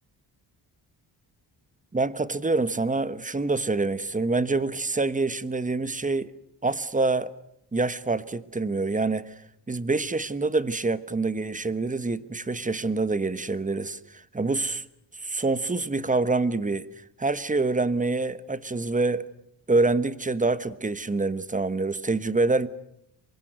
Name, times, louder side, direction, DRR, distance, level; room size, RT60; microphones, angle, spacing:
voice 1, 1.9-6.3 6.6-7.3 7.7-9.4 9.7-14.8 15.2-16.9 17.2-19.3 19.7-22.7, right 3 dB, 15° right, 1.3 m, -26 dB
28.0 x 23.0 x 8.1 m
cardioid pair, 115°, 44 cm